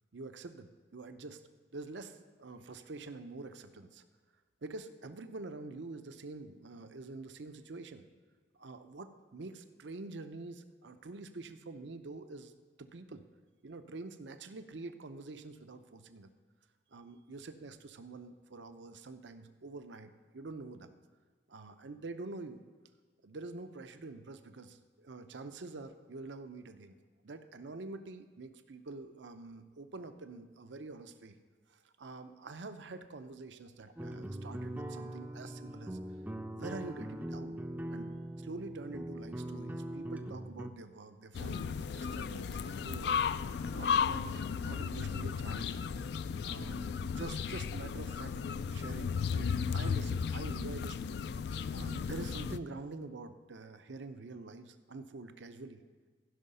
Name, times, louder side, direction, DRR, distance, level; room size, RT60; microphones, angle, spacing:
voice 1, 0.1-1.4 1.7-4.0 4.6-8.0 8.5-12.5 12.8-13.2 13.6-16.3 16.9-21.0 21.5-22.6 23.2-27.0 27.2-31.4 31.7-36.0 36.5-37.6 37.9-43.1 43.7-45.8 46.4-48.4 48.7-55.8, right 3 dB, 85° right, 9 dB, 0.6 m, -46 dB
sound 1, 34.0-40.7, right 1 dB, 10° right, 0.4 m, -41 dB
sound 2, 41.3-52.6, left 6 dB, 65° left, 0.3 m, -35 dB
15.0 x 5.6 x 5.4 m, 1.5 s
head